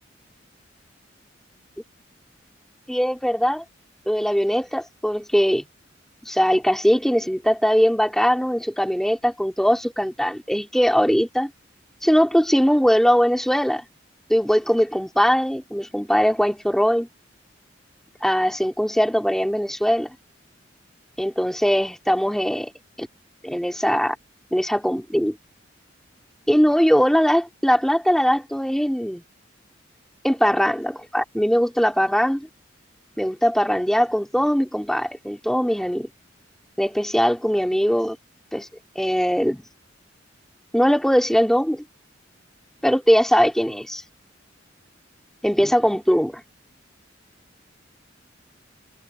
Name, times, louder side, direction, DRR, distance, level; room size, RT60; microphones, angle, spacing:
voice 1, 2.9-3.6 4.1-5.6 6.2-11.5 12.0-13.8 14.3-17.1 18.2-20.1 21.2-22.7 23.0-23.1 23.4-24.2 24.5-25.4 26.5-29.2 30.2-32.5 33.2-36.1 36.8-38.2 38.5-38.7 38.9-39.6 40.7-41.8 42.8-44.0 45.4-46.4, equal, ahead, 3.2 m, -20 dB
head